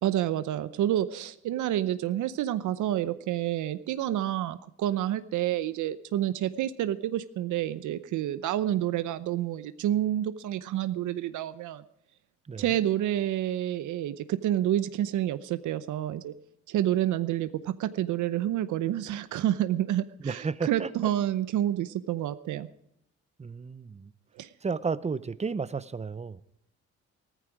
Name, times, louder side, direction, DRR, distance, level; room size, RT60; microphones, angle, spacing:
voice 1, 0.0-11.8 12.6-16.3 16.7-22.7 24.4-24.5, right 12 dB, 80° right, 0.8 m, -29 dB
voice 2, 20.2-21.1 23.4-24.1 24.6-26.4, right 5 dB, 20° right, 0.7 m, -33 dB
15.0 x 14.0 x 4.7 m
cardioid pair, 90°, 30 cm